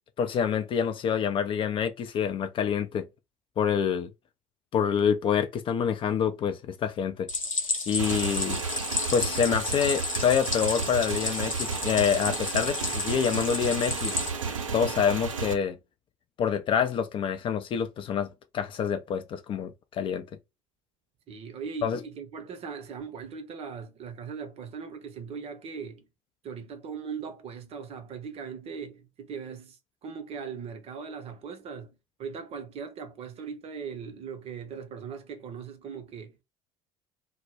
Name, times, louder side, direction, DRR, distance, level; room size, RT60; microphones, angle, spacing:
voice 1, 0.2-3.1 3.6-4.1 4.7-7.3 7.9-8.6 9.1-14.2 14.7-15.8 16.4-20.3 21.8-22.0, left 7 dB, 30° left, 0.3 m, -27 dB
Stream, 7.3-14.3, left 3 dB, 90° left, 0.6 m, -32 dB
Motorcycle / Engine, 8.0-15.5, right 5 dB, 75° right, 0.5 m, -33 dB
voice 2, 21.3-26.1 26.4-31.9 32.2-36.4, right 6 dB, 40° right, 0.7 m, -39 dB
2.1 x 2.0 x 3.1 m
figure-of-eight pair, 65°, 16 cm